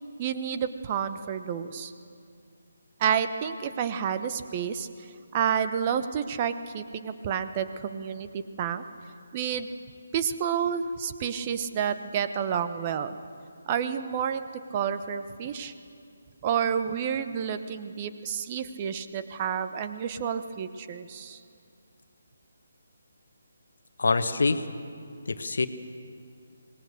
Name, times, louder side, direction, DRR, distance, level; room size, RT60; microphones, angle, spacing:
voice 1, 0.2-1.9 3.0-4.9 5.3-8.8 9.3-9.7 10.1-13.2 13.7-15.7 16.4-21.4, right 8 dB, 30° right, 10 dB, 1.0 m, -30 dB
voice 2, 24.0-24.6 25.3-25.7, left 3 dB, 60° left, 10 dB, 1.2 m, -25 dB
24.5 x 19.5 x 6.8 m, 2.4 s
figure-of-eight pair, 145°, 0 cm